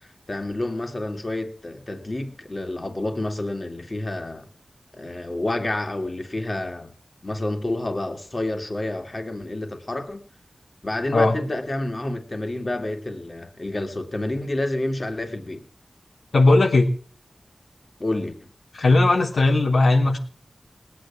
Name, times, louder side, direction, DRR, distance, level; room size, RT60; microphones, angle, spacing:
voice 1, 0.0-4.5 4.9-6.9 7.2-10.3 10.8-15.7 18.0-18.5, left 1 dB, 35° left, 2.7 m, -29 dB
voice 2, 16.3-16.9 18.7-20.2, left 2 dB, 85° left, 3.3 m, -17 dB
19.5 x 9.3 x 7.3 m
wide cardioid pair, 85°, 0 cm